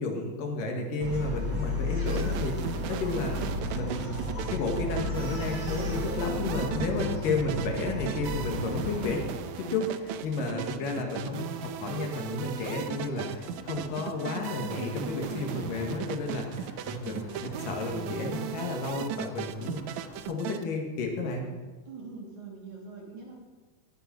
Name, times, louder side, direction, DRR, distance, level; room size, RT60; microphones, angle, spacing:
voice 1, 0.0-3.4 3.7-4.1 4.5-9.2 9.6-19.8 20.2-21.5, left 3 dB, 75° left, 2 dB, 3.4 m, -32 dB
Bark, 1.0-9.2, left 1 dB, 30° right, 3.0 m, -33 dB
sound 1, 1.2-20.2, left 1 dB, 35° left, 3.0 m, -49 dB
sound 2, 2.1-20.6, right 10 dB, 80° right, 1.7 m, -37 dB
voice 2, 10.5-10.9 21.9-23.3, right 5 dB, 60° right, -2 dB, 4.1 m, -43 dB
18.0 x 8.1 x 5.9 m, 1.3 s
omnidirectional pair, 3.9 m